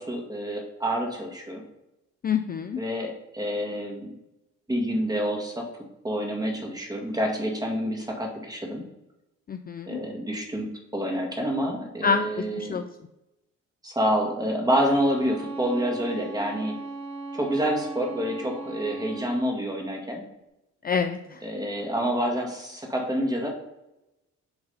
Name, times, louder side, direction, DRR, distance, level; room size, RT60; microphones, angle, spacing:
voice 1, 0.0-1.6 2.8-4.1 4.7-5.7 6.0-8.8 9.9-12.8 13.8-16.8 17.3-20.2 21.4-23.5, equal, 15° right, 1 dB, 1.9 m, -28 dB
voice 2, 2.2-2.8 9.5-10.0 12.0-12.2 12.6-12.8 20.8-21.4, left 6 dB, 30° left, 8 dB, 0.4 m, -26 dB
Bowed string instrument, 14.6-19.5, right 3 dB, 50° right, 1.9 m, -38 dB
6.9 x 4.0 x 5.4 m, 0.90 s
cardioid pair, 90°, 30 cm